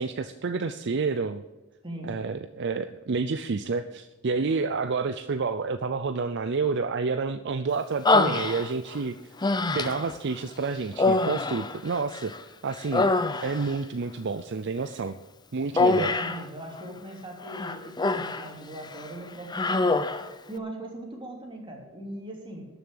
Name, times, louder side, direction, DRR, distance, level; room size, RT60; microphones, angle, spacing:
voice 1, 0.0-1.4 2.0-9.2 9.7-12.3 12.6-13.1 13.4-15.2 15.5-16.1, right 4 dB, 55° right, 11 dB, 0.5 m, -29 dB
voice 2, 1.8-2.2 15.7-20.0 20.5-22.7, right 1 dB, 25° right, 0 dB, 3.1 m, -39 dB
Human voice, 8.1-9.0 9.4-10.2 10.9-12.4 12.7-13.8 15.8-16.5 17.5-18.5 18.8-19.1 19.5-20.3, left 3 dB, 20° left, 0.6 m, -25 dB
13.0 x 7.0 x 8.9 m, 1.1 s
head